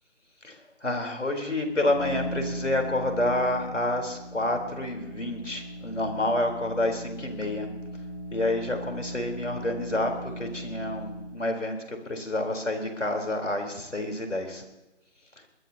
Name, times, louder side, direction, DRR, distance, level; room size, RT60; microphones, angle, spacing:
voice 1, 0.8-7.7 8.3-10.1 10.4-14.6, left 1 dB, 85° left, 3 dB, 4.2 m, -28 dB
sound 1, 1.6-11.5, right 1 dB, 65° left, 3.1 m, -38 dB
22.5 x 20.0 x 2.9 m, 1.0 s
figure-of-eight pair, 180°, 36 cm